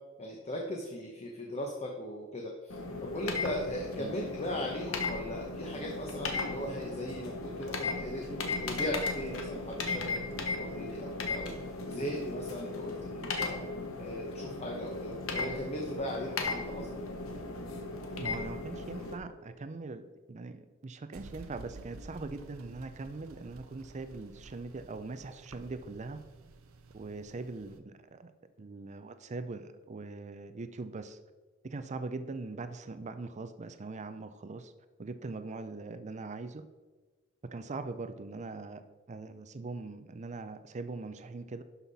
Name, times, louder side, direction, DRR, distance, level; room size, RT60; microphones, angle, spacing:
voice 1, 0.2-11.5 11.8-13.5 14.0-16.9, left 1 dB, 30° left, 1 dB, 1.0 m, -38 dB
sound 1, 2.7-19.1, left 3 dB, 80° left, 1.3 m, -37 dB
voice 2, 18.2-26.2 26.9-31.2 31.6-34.7 35.0-36.6 37.4-38.8 39.1-41.6, right 3 dB, 35° right, 10 dB, 0.5 m, -41 dB
sound 2, 21.1-27.8, right 3 dB, 90° right, 0.7 m, -51 dB
11.5 x 5.6 x 4.1 m, 1.3 s
head